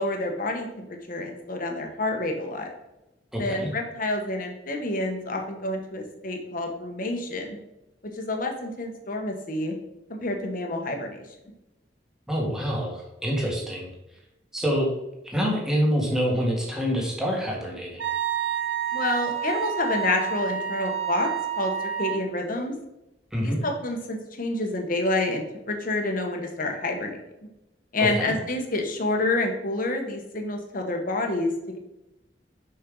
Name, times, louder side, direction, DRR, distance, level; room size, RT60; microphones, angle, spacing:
voice 1, 0.0-2.7 3.4-7.6 8.1-9.8 10.1-11.2 18.9-21.3 21.6-21.7 22.0-22.7 23.4-27.2 27.9-31.8, left 2 dB, 50° left, 2 dB, 1.3 m, -28 dB
voice 2, 3.3-3.7 12.3-13.9 14.5-14.9 15.2-18.0 23.3-23.6 28.0-28.3, equal, 5° right, -3 dB, 1.8 m, -26 dB
Wind instrument woodwind instrument, 18.0-22.3, right 9 dB, 85° right, 1.2 m, -29 dB
6.9 x 5.5 x 3.9 m, 0.93 s
head